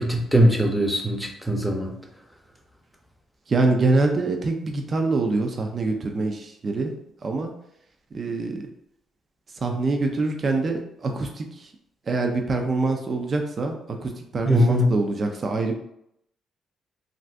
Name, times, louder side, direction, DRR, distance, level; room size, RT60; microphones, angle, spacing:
voice 1, 0.0-1.9 14.5-14.9, equal, ahead, 1 dB, 0.6 m, -20 dB
voice 2, 3.5-6.9 7.2-7.5 8.1-8.6 9.6-11.7 12.1-15.8, right 3 dB, 40° right, 4 dB, 0.4 m, -25 dB
2.5 x 2.5 x 3.3 m, 0.75 s
cardioid pair, 90°, 0 cm